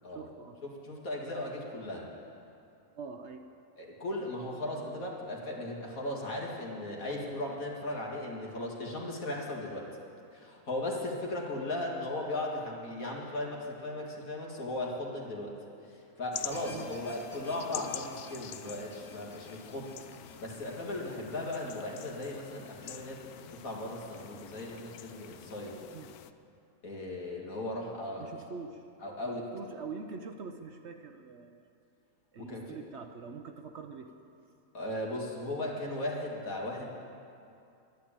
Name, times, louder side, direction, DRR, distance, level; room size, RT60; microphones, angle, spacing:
voice 1, 0.1-0.6 1.5-1.6 2.9-3.5 16.7-16.9 25.9-26.1 28.2-28.8 29.2-31.7 32.3-34.1, right 5 dB, 60° right, 6 dB, 0.9 m, -44 dB
voice 2, 0.6-2.1 3.8-9.9 10.3-15.6 15.9-19.9 20.4-25.8 26.8-28.3 29.0-29.5 32.4-32.8 34.7-36.9, left 1 dB, 70° left, -2 dB, 2.4 m, -37 dB
sound 1, 16.3-26.3, left 11 dB, 90° left, 1.1 m, -46 dB
sound 2, 16.5-22.9, left 1 dB, 15° left, 1.6 m, -54 dB
11.5 x 10.5 x 8.7 m, 2.6 s
omnidirectional pair, 1.5 m